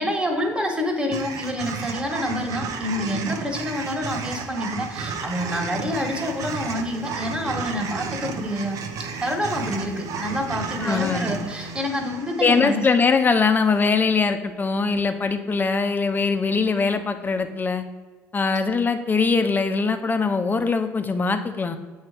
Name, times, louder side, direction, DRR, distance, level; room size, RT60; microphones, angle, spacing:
voice 1, 0.0-8.8 9.2-12.8, left 1 dB, 15° right, 3 dB, 1.7 m, -27 dB
sound 1, 1.1-13.4, right 5 dB, 60° right, 0.8 m, -33 dB
sound 2, 4.9-11.8, right 1 dB, 85° right, 1.3 m, -41 dB
voice 2, 10.8-11.3 12.4-17.8 18.3-21.8, left 4 dB, 25° left, 8 dB, 0.8 m, -22 dB
7.6 x 3.2 x 5.9 m, 1.4 s
hypercardioid pair, 70°, 7 cm